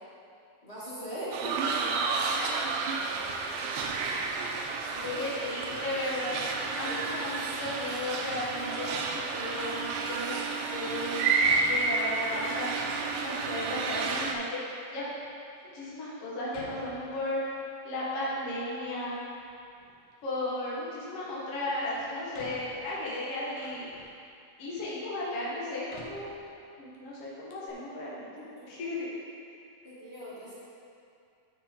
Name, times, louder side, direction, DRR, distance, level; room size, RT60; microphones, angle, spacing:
voice 1, 0.6-2.1 4.9-5.3 6.7-7.2 28.4-28.7 29.8-30.5, equal, 30° left, -10 dB, 1.3 m, -39 dB
sound 1, 1.3-14.3, right 4 dB, 85° right, 2.5 m, -31 dB
voice 2, 5.2-6.4 6.8-10.4 10.7-12.7 13.2-15.0 15.7-19.2 20.2-23.9 24.6-26.3 26.8-28.3 28.7-29.1, left 1 dB, 50° left, -8 dB, 2.3 m, -35 dB
Door, 11.4-12.4 13.1-13.7 14.5-14.6 15.2-15.3 16.5-17.7 18.0-19.1 19.4-20.2 21.5-21.6 22.3-24.3 25.0-25.1 25.9-27.0 27.2-27.3 27.5-27.7, left 2 dB, 70° left, 1.7 m, -51 dB
12.0 x 6.6 x 3.8 m, 2.5 s
omnidirectional pair, 4.3 m